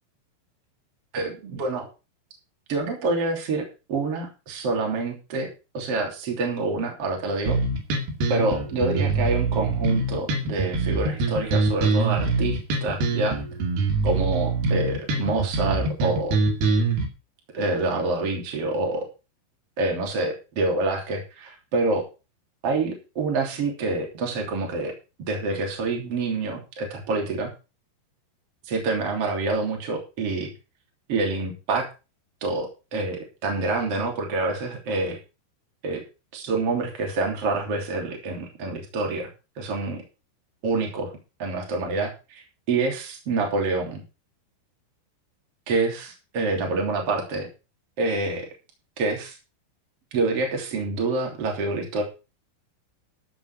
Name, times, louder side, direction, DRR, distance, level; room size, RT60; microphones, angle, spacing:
voice 1, 1.1-1.9 2.7-3.6 3.9-5.5 5.7-7.6 8.3-13.4 14.0-16.4 17.5-19.0 19.8-22.0 22.6-24.9 25.3-27.5 28.7-30.5 31.1-31.8 32.4-35.2 35.8-36.0 36.3-39.3 39.6-40.0 40.6-41.1 41.4-44.0 45.7-47.5 48.0-48.5 49.0-49.3 50.1-52.0, right 3 dB, 35° right, 1 dB, 3.7 m, -27 dB
sound 1, 7.5-17.1, right 3 dB, 65° right, 4.2 m, -24 dB
14.5 x 6.1 x 6.0 m, 0.31 s
omnidirectional pair, 5.2 m